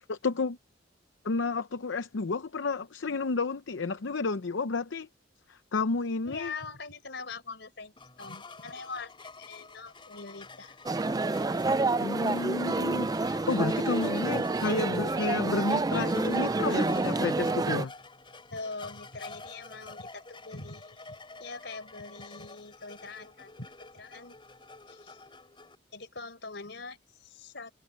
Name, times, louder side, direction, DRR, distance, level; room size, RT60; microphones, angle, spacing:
voice 1, 0.1-0.6 1.2-5.1 5.5-6.5 12.0-17.9, left 3 dB, 85° left, 0.7 m, -31 dB
voice 2, 6.2-10.8 18.5-23.7 23.9-24.4 24.9-25.2 25.9-27.7, left 4 dB, 65° left, 4.7 m, -43 dB
sound 1, 8.0-25.8, left 3 dB, 25° left, 4.6 m, -48 dB
sound 2, 10.9-17.9, right 3 dB, 20° right, 0.4 m, -28 dB
head